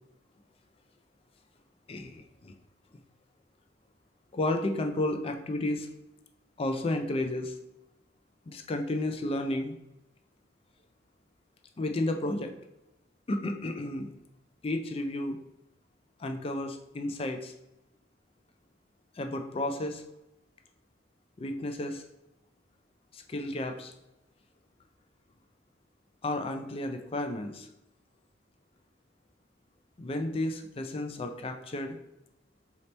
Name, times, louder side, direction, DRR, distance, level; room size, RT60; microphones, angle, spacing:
voice 1, 1.9-2.5 4.3-5.9 6.6-7.6 8.5-9.7 11.8-12.5 13.3-14.1 14.6-15.4 16.2-17.5 19.1-20.0 21.4-22.0 23.1-23.9 26.2-27.7 30.0-32.0, left 1 dB, 30° left, 5 dB, 0.4 m, -32 dB
4.0 x 2.9 x 3.2 m, 0.87 s
head